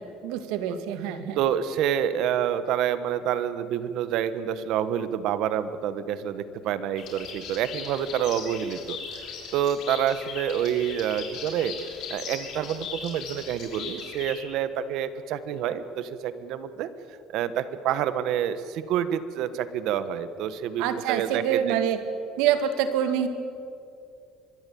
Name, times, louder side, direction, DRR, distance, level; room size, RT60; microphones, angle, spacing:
voice 1, 0.0-1.4 20.8-22.0 22.4-23.3, right 9 dB, 85° right, 9 dB, 2.3 m, -26 dB
voice 2, 1.3-9.0 9.5-11.7 12.1-16.9 17.3-21.8, right 9 dB, 55° right, 13 dB, 1.3 m, -28 dB
sound 1, 7.0-14.3, left 6 dB, 50° left, 5.7 m, -39 dB
25.0 x 21.0 x 8.6 m, 2.5 s
cardioid pair, 170°, 0 cm